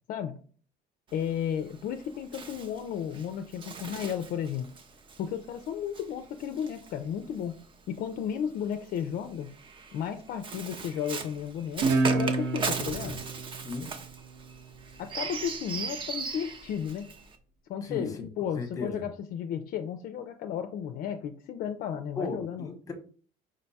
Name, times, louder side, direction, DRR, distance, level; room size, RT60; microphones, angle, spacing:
voice 1, 1.1-4.7 5.2-7.6 7.9-9.5 9.9-13.2 15.0-17.1 17.7-22.7, left 8 dB, 50° left, 7 dB, 0.4 m, -34 dB
Bird, 1.1-7.6 8.6-17.4, right 4 dB, 25° right, 0.5 m, -39 dB
Guitar, 11.8-15.0, right 3 dB, 70° right, 0.9 m, -30 dB
voice 2, 17.8-18.3 18.6-19.0 22.2-22.9, left 3 dB, 20° left, 4 dB, 0.8 m, -36 dB
5.0 x 2.2 x 4.0 m, 0.44 s
cardioid pair, 145°, 19 cm